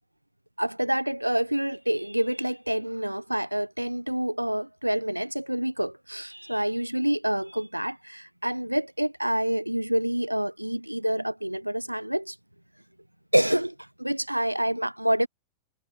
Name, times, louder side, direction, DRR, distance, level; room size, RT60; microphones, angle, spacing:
voice 1, 0.6-12.3 13.3-15.3, right 1 dB, 90° right, 1.7 m, -27 dB
figure-of-eight pair, 90°, 0 cm